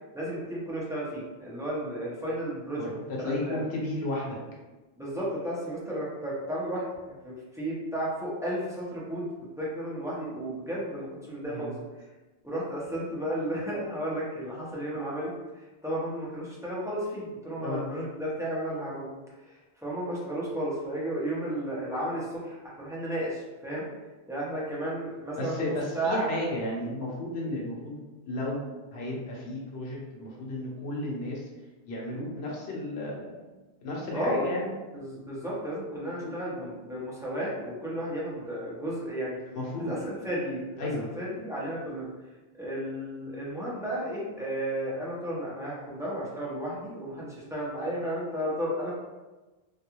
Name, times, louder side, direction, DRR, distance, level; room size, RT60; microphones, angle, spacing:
voice 1, 0.1-2.9 3.2-3.6 5.0-6.8 7.2-9.3 9.6-11.7 12.4-15.3 15.8-19.1 19.4-23.8 24.3-26.3 34.1-34.5 34.9-39.4 39.9-42.1 42.6-48.9, right 1 dB, 5° right, -7 dB, 0.4 m, -33 dB
voice 2, 2.8-4.4 11.5-11.7 17.6-17.8 25.4-31.5 31.8-33.5 33.8-34.7 36.2-36.4 39.5-39.9 40.8-41.1, left 1 dB, 85° left, -3 dB, 1.0 m, -33 dB
2.4 x 2.3 x 2.9 m, 1.2 s
omnidirectional pair, 1.1 m